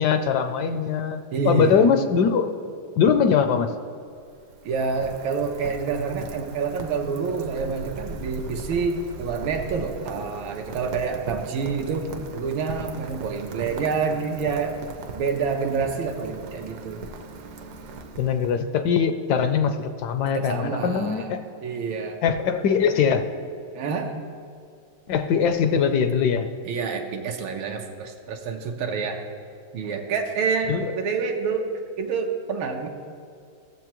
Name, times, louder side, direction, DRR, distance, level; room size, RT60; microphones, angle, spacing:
voice 1, 0.0-2.5 3.0-3.7 18.2-21.4 22.2-23.2 25.1-26.5 30.7-30.9, left 7 dB, 75° left, 8 dB, 1.0 m, -22 dB
voice 2, 1.3-1.9 4.6-12.1 12.3-14.8 15.1-17.0 20.3-21.3 21.6-22.2 23.7-24.2 26.6-29.2 29.7-31.7 32.0-32.9, right 5 dB, 85° right, 3 dB, 1.7 m, -27 dB
Rain, 4.0-18.8, right 3 dB, 65° right, 1.2 m, -39 dB
15.5 x 7.4 x 3.0 m, 2.4 s
omnidirectional pair, 2.2 m